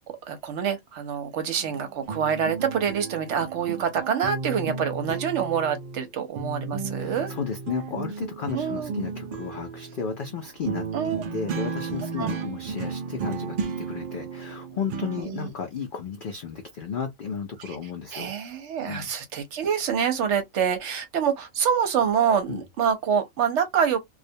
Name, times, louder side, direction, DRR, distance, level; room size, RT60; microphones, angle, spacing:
voice 1, 0.3-7.3 8.5-8.9 10.9-11.2 12.2-12.3 15.2-15.5 17.6-17.8 18.1-24.0, right 7 dB, 65° right, 0.8 m, -26 dB
sound 1, 1.6-6.1 6.4-15.2, right 5 dB, 90° right, 0.4 m, -34 dB
voice 2, 7.0-18.3 18.9-19.1 22.5-22.6, left 6 dB, 75° left, 0.4 m, -33 dB
2.3 x 2.1 x 2.6 m
omnidirectional pair, 1.4 m